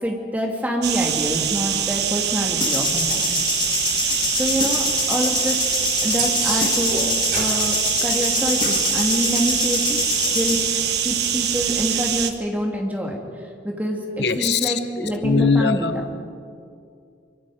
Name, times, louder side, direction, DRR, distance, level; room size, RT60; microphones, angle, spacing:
voice 1, 0.0-3.4 4.3-5.6 6.0-7.1 7.3-10.0 10.3-10.6 11.0-13.2 13.6-16.0, equal, 10° right, 0 dB, 2.6 m, -26 dB
sound 1, 0.8-12.3, right 9 dB, 65° right, 1.3 m, -24 dB
sound 2, 2.6-10.7, left 5 dB, 25° left, 1.7 m, -25 dB
sound 3, 6.2-7.6 8.6-8.9 11.1-11.2, right 4 dB, 50° right, 3.8 m, -28 dB
voice 2, 14.2-16.1, left 4 dB, 70° left, 10 dB, 0.9 m, -22 dB
24.5 x 24.0 x 5.1 m, 2.4 s
head